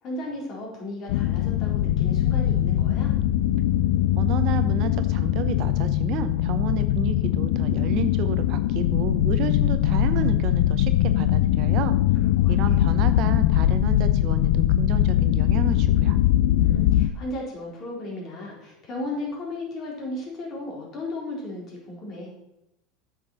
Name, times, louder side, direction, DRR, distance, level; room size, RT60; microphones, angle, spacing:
voice 1, 0.0-3.1 12.2-12.8 16.6-22.3, left 1 dB, 40° left, -2 dB, 3.9 m, -35 dB
sound 1, 1.1-17.1, left 13 dB, 75° left, 0.4 m, -21 dB
voice 2, 4.1-12.0 12.5-16.2, right 9 dB, 55° right, 10 dB, 0.8 m, -31 dB
8.5 x 5.9 x 5.5 m, 0.85 s
supercardioid pair, 120°, 0 cm